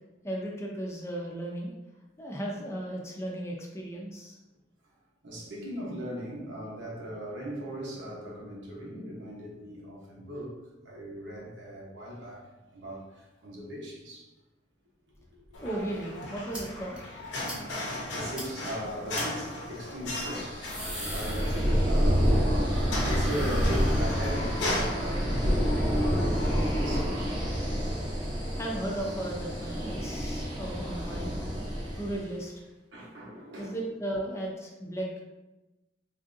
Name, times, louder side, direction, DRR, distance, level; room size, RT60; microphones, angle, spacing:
voice 1, 0.2-1.7 2.2-4.4 15.6-17.0 28.6-31.3 32.0-32.6 33.6-35.2, right 1 dB, 15° left, -2 dB, 0.5 m, -35 dB
voice 2, 5.2-10.5 10.8-12.5 12.7-14.3 15.6-15.7 18.1-20.7 21.1-27.4 30.4-30.8 31.1-31.3 32.9-33.8, equal, 85° right, -3 dB, 0.9 m, -39 dB
sound 1, 15.5-27.0, left 1 dB, 80° left, 0.8 m, -37 dB
sound 2, 16.5-16.6 17.0-17.1 17.5-17.6 17.9-18.0 18.4-18.5 19.1-19.3 20.4-22.0 22.3-24.5, equal, 5° right, 1.1 m, -40 dB
sound 3, 20.5-32.2, equal, 25° right, 0.7 m, -28 dB
3.5 x 2.6 x 2.5 m, 1.0 s
head